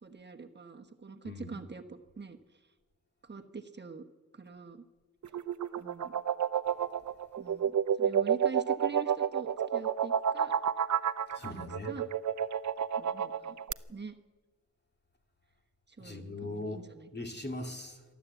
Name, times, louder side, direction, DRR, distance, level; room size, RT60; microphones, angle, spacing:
voice 1, 0.0-2.6 3.2-4.0 4.3-4.8 5.8-6.1 7.4-10.5 11.4-12.1 13.0-13.6 13.9-14.2 15.9-17.1, right 4 dB, 35° right, 1.2 m, -44 dB
sound 1, 5.2-13.7, right 8 dB, 75° right, 0.7 m, -30 dB
voice 2, 6.7-7.1 11.3-11.9 16.0-18.0, left 2 dB, 35° left, 2.4 m, -41 dB
27.5 x 11.5 x 8.2 m
wide cardioid pair, 115°, 29 cm